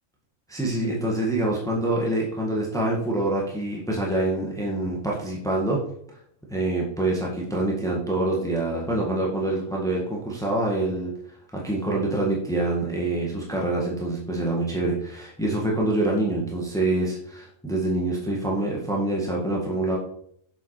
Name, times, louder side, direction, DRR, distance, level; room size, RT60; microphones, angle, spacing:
voice 1, 0.5-5.8 6.5-11.1 11.5-20.0, right 2 dB, ahead, -3 dB, 1.9 m, -26 dB
7.5 x 7.2 x 5.0 m, 0.68 s
omnidirectional pair, 1.4 m